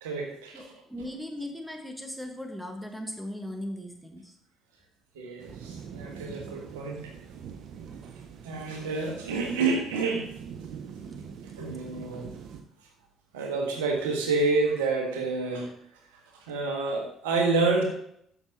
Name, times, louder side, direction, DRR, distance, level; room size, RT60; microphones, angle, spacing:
voice 1, 0.0-0.6 5.1-7.1 8.4-10.3 11.6-12.3 13.3-15.7 16.5-17.8, right 3 dB, 75° right, 2 dB, 1.5 m, -28 dB
voice 2, 0.5-4.3, left 1 dB, 5° right, 4 dB, 1.5 m, -38 dB
sound 1, 5.4-12.6, right 7 dB, 55° right, 0.8 m, -43 dB
13.0 x 6.2 x 2.9 m, 0.70 s
figure-of-eight pair, 50°, 0 cm